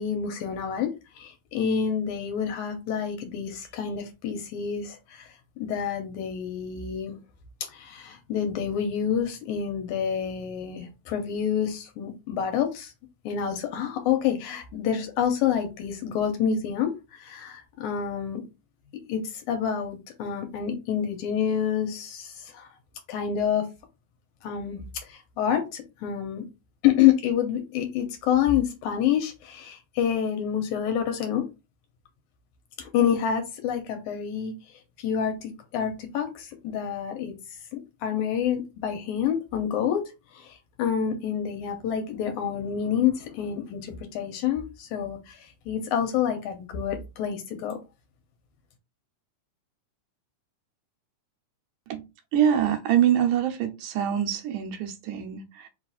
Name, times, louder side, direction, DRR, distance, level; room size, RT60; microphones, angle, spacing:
voice 1, 0.0-7.2 7.7-12.9 13.3-18.4 19.1-22.7 23.1-23.7 24.4-26.4 26.8-31.4 32.8-34.5 35.0-37.3 37.7-40.0 40.3-47.8, left 8 dB, 75° left, 2.1 m, -28 dB
voice 2, 52.3-55.7, right 9 dB, 90° right, 2.2 m, -24 dB
5.0 x 2.4 x 4.0 m
omnidirectional pair, 3.6 m